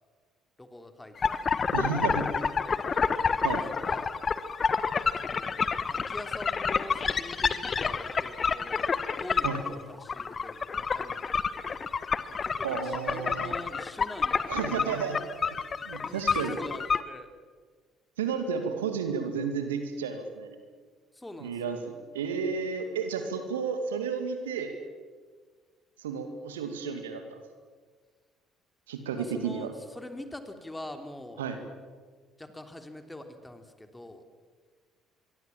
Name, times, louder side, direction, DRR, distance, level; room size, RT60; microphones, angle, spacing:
voice 1, 0.6-2.1 2.6-3.0 3.4-4.1 5.2-8.9 9.2-11.2 11.5-11.9 12.4-14.8 16.0-17.3 21.1-21.8 29.1-31.4 32.4-34.2, left 1 dB, 10° left, 7 dB, 3.4 m, -44 dB
sound 1, 1.2-17.0, left 5 dB, 35° left, 1.3 m, -29 dB
voice 2, 1.7-2.4 3.4-3.6 9.4-9.6 12.6-13.5 14.5-15.2 15.8-16.6 18.2-20.6 21.4-21.8 22.1-24.7 26.0-27.4 28.9-29.7 31.4-31.6, right 6 dB, 75° right, 7 dB, 2.4 m, -32 dB
26.0 x 23.0 x 7.4 m, 1.5 s
figure-of-eight pair, 50°, 0 cm